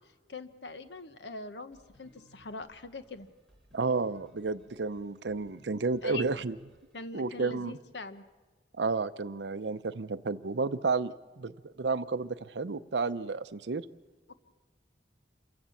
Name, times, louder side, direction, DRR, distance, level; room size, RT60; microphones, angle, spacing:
voice 1, 0.3-3.3 6.0-6.4 6.9-8.2 14.3-14.4, left 2 dB, 75° left, 11 dB, 1.1 m, -42 dB
sound 1, 1.7-6.9, right 1 dB, 5° left, 4.0 m, -63 dB
voice 2, 3.7-6.5 7.1-7.8 8.8-13.8, right 4 dB, 75° right, 14 dB, 0.6 m, -31 dB
27.5 x 15.5 x 7.1 m, 1.3 s
head